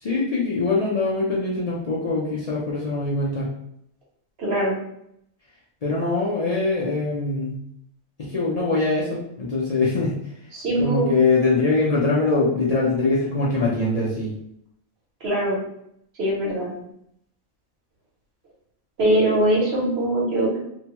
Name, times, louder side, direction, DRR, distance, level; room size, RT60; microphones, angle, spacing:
voice 1, 0.0-3.5 5.8-7.6 8.2-10.2 10.8-14.3, left 3 dB, 65° left, -6 dB, 0.3 m, -23 dB
voice 2, 4.4-4.8 10.5-11.1 15.2-15.6 16.2-16.7 19.0-20.6, right 1 dB, 55° right, -4 dB, 1.1 m, -22 dB
2.7 x 2.2 x 2.9 m, 0.74 s
omnidirectional pair, 1.4 m